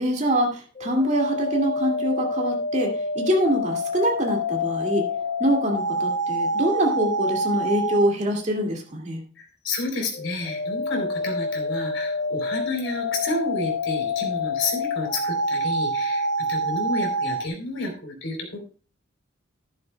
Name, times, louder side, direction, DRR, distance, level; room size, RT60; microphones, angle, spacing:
voice 1, 0.0-5.1 5.4-9.2, right 1 dB, 35° right, 1 dB, 2.3 m, -24 dB
sound 1, 0.8-8.1 10.1-17.4, left 1 dB, 35° left, 0.8 m, -27 dB
voice 2, 9.4-18.6, left 2 dB, 75° left, 2 dB, 3.5 m, -30 dB
12.0 x 11.0 x 2.3 m, 0.37 s
head